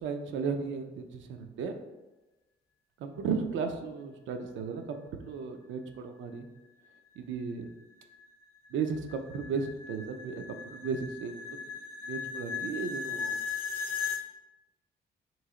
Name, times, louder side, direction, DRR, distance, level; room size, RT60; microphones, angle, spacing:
voice 1, 0.0-1.8 3.0-6.5 7.2-7.7 8.7-11.7 12.0-13.4, right 5 dB, 75° right, 6 dB, 0.5 m, -35 dB
sound 1, 7.1-14.2, left 6 dB, 50° left, 0.6 m, -38 dB
3.1 x 2.7 x 3.6 m, 1.1 s
cardioid pair, 90°, 20 cm